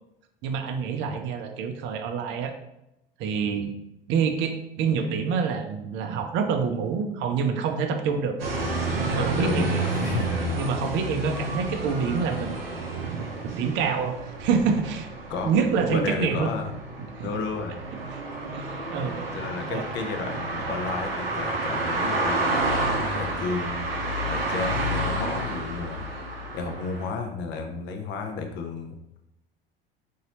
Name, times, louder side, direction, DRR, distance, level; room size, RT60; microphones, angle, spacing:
voice 1, 0.4-2.5 3.2-3.7 4.1-8.4 8.9-9.7 10.6-12.6 13.0-15.1 15.4-16.5 17.2-17.3 18.1-18.2 18.5-19.4 19.7-19.8, right 6 dB, 40° right, 6 dB, 0.6 m, -27 dB
sound 1, 8.4-27.1, right 2 dB, 80° right, 0.6 m, -30 dB
voice 2, 9.1-10.3 15.3-15.5 15.9-16.7 17.2-17.8 19.3-23.9 24.2-26.1 26.5-29.2, left 4 dB, 40° left, 4 dB, 0.7 m, -32 dB
3.9 x 2.8 x 2.8 m, 0.84 s
figure-of-eight pair, 70°, 29 cm